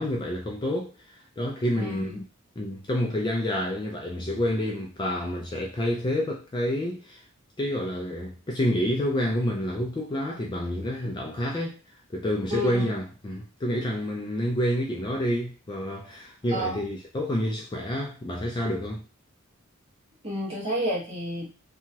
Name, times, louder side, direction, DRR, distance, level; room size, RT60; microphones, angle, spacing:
voice 1, 0.0-2.2 2.6-7.2 7.6-11.8 12.1-19.0, equal, 20° left, 0.4 m, -28 dB
voice 2, 1.8-2.2 12.5-12.9 16.5-16.8 20.2-21.5, equal, 25° right, 1.3 m, -30 dB
2.8 x 2.3 x 2.8 m
head